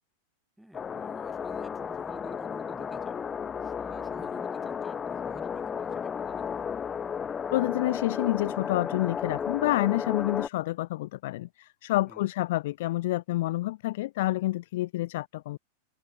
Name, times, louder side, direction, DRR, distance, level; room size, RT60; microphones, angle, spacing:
voice 1, 0.6-3.2 3.6-6.6 12.1-12.3, right 1 dB, ahead, 4.8 m, -49 dB
sound 1, 0.7-10.5, left 7 dB, 20° left, 1.0 m, -33 dB
voice 2, 7.5-15.6, left 17 dB, 55° left, 0.4 m, -28 dB
figure-of-eight pair, 90°, 0 cm